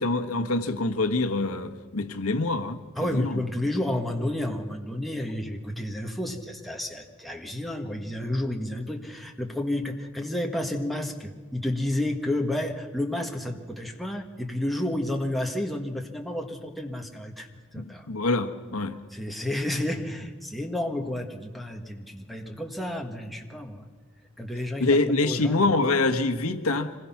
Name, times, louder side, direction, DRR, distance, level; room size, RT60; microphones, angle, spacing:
voice 1, 0.0-3.4 17.7-18.9 24.8-26.9, left 2 dB, 80° left, 1.3 m, -25 dB
voice 2, 3.0-18.1 19.1-23.9 24.4-25.7, left 1 dB, ahead, 1.7 m, -31 dB
25.5 x 20.5 x 5.9 m
head